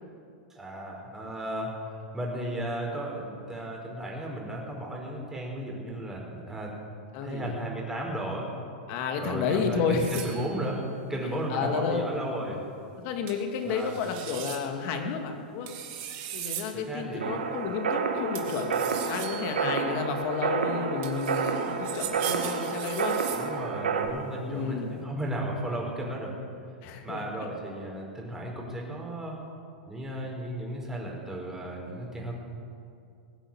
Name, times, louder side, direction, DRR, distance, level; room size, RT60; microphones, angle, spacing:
voice 1, 0.5-6.7 7.2-8.5 9.2-12.6 13.6-14.0 16.7-17.3 23.3-26.4 27.0-29.4 29.9-32.3, right 1 dB, 10° right, -1 dB, 4.7 m, -34 dB
voice 2, 7.1-7.5 8.9-10.2 11.5-12.1 13.0-15.7 16.3-23.2 24.4-24.9 26.8-27.2, left 5 dB, 50° left, 4 dB, 2.5 m, -31 dB
sound 1, 10.0-10.7 13.3-13.4 13.7-14.6 15.7-16.7 18.4-19.9 21.0-23.4, right 10 dB, 50° right, 2.4 m, -39 dB
sound 2, 17.2-24.1, right 5 dB, 85° right, 1.6 m, -30 dB
21.0 x 9.0 x 7.4 m, 2.4 s
hypercardioid pair, 110°, 5 cm